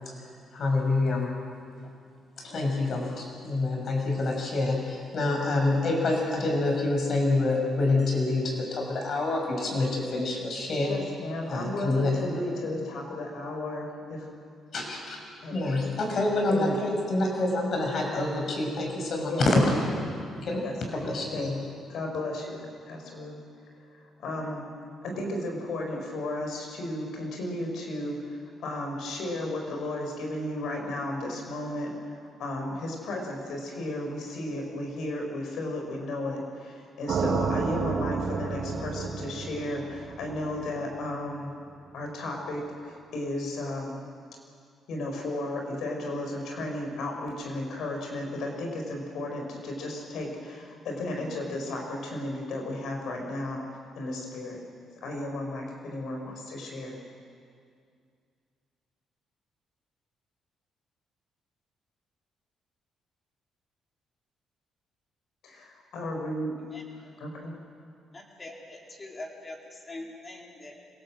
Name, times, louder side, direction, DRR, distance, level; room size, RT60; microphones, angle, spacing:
voice 1, 0.5-1.3 2.4-10.9 11.5-12.4 14.7-15.2 15.5-20.0 20.3-20.6 20.9-21.5, left 2 dB, 55° left, 1 dB, 6.6 m, -27 dB
voice 2, 10.8-14.3 15.4-15.6 16.5-16.8 19.3-19.5 20.6-21.5 21.9-23.4 23.9-24.7 25.0-41.5 41.9-44.0 44.9-53.6 54.0-54.6 55.0-57.0 65.4-66.5 67.2-67.6, left 1 dB, 75° left, 1 dB, 5.9 m, -34 dB
sound 1, 37.1-41.2, right 5 dB, 65° right, 2.9 m, -31 dB
voice 3, 66.7-67.1 68.1-69.6 69.8-70.8, left 2 dB, 30° left, 0 dB, 4.4 m, -43 dB
25.5 x 18.0 x 7.7 m, 2.2 s
cardioid pair, 90°, 0 cm